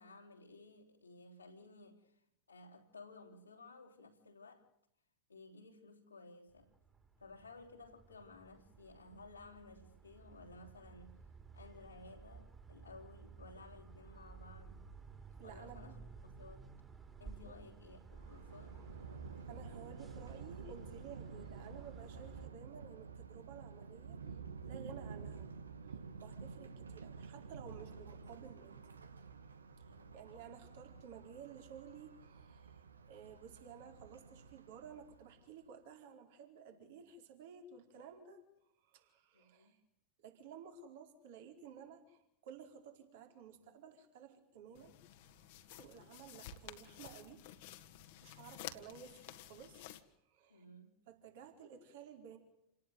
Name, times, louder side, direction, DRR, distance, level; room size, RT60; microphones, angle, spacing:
voice 1, 0.0-2.2 2.5-4.7 5.3-6.7 7.2-11.2 11.5-14.8 15.4-16.7 17.2-18.8 29.9-30.2 39.3-39.8 50.5-51.0, left 3 dB, 80° left, 3.1 m, -56 dB
sound 1, 6.5-22.5, right 5 dB, 15° right, 3.5 m, -55 dB
voice 2, 15.4-16.0 17.4-17.6 19.5-24.4 24.6-25.5 25.8-28.8 30.1-38.4 38.8-39.8 40.2-44.9 45.2-47.4 48.2-49.8 50.3-50.6 51.1-52.4, right 7 dB, 55° right, 4.5 m, -54 dB
Thunder, 18.1-35.5, right 5 dB, 70° right, 1.4 m, -51 dB
sound 2, 44.7-50.0, left 11 dB, 50° left, 1.8 m, -52 dB
28.5 x 18.5 x 9.3 m
figure-of-eight pair, 90°, 0 cm